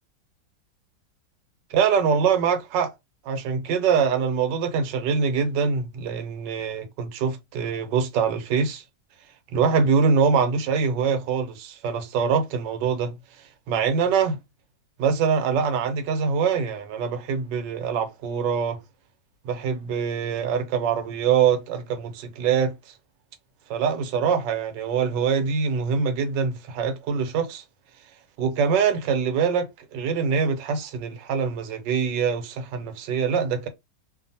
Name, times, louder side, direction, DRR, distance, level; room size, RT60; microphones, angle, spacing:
voice 1, 1.7-2.9 3.2-8.8 9.5-13.1 13.7-14.4 15.0-18.8 19.4-22.9 23.7-27.6 28.4-33.7, right 6 dB, 90° right, 1.3 m, -24 dB
2.7 x 2.5 x 2.6 m
omnidirectional pair, 1.9 m